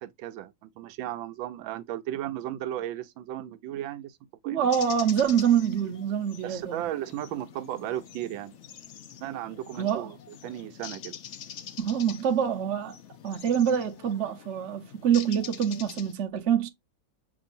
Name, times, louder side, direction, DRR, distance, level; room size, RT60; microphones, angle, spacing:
voice 1, 0.0-4.2 4.4-4.7 6.4-8.5 9.2-10.2 10.4-11.2, right 12 dB, 80° right, 1.4 m, -35 dB
voice 2, 4.4-6.8 9.8-10.1 11.8-12.9 13.2-16.7, right 8 dB, 55° right, 0.8 m, -26 dB
sound 1, 4.7-16.1, left 8 dB, 85° left, 0.6 m, -45 dB
6.9 x 2.8 x 2.6 m
omnidirectional pair, 2.1 m